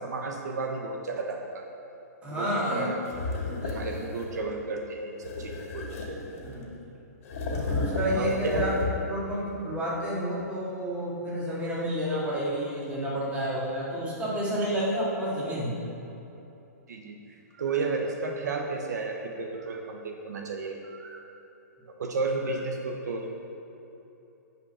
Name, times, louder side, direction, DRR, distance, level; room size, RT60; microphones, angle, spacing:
voice 1, 0.0-1.6 2.3-3.0 3.6-6.4 7.6-7.8 8.1-8.7 16.9-17.2 17.5-21.2 22.0-23.3, right 3 dB, 75° right, 2 dB, 1.1 m, -33 dB
voice 2, 2.2-2.9 3.4-4.0 6.4-6.7 7.5-8.7 9.1-15.7, equal, 15° right, -7 dB, 2.4 m, -30 dB
sound 1, 3.1-4.4 5.2-6.7 7.2-9.2, left 3 dB, 55° left, 2.0 m, -33 dB
9.2 x 5.3 x 7.4 m, 2.9 s
hypercardioid pair, 145°, 9 cm